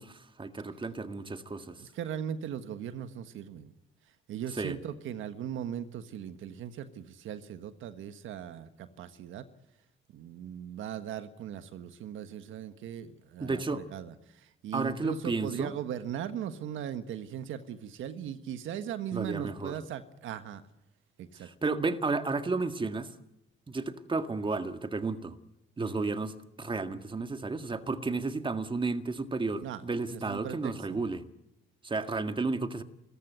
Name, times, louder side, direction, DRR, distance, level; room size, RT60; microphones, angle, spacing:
voice 1, 0.0-1.8 4.6-4.8 13.4-13.9 14.7-15.7 19.1-19.7 21.4-23.1 23.7-25.4 25.8-31.3 31.8-32.8, right 3 dB, 25° right, 1.8 m, -32 dB
voice 2, 1.7-3.7 4.3-9.5 10.1-20.6 21.2-21.5 25.8-26.1 29.6-29.8 30.1-31.0, right 9 dB, 80° right, 1.6 m, -39 dB
29.5 x 14.5 x 9.3 m
cardioid pair, 90°, 20 cm